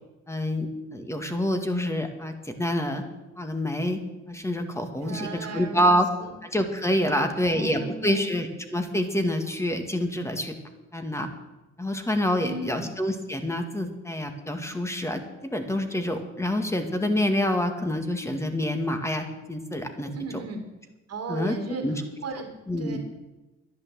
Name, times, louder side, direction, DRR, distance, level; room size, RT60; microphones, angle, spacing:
voice 1, 0.3-3.0 3.4-4.0 4.3-6.1 6.4-10.5 10.9-11.3 11.8-15.2 15.5-20.4 21.3-21.6 21.8-21.9 22.7-23.0, left 1 dB, 10° left, 6 dB, 2.1 m, -27 dB
voice 2, 5.0-6.3 7.0-8.3 12.4-12.9 20.1-20.6 21.1-21.9 22.2-23.0, right 3 dB, 55° right, 3 dB, 2.6 m, -36 dB
12.0 x 10.5 x 7.8 m, 1.1 s
cardioid pair, 90°, 30 cm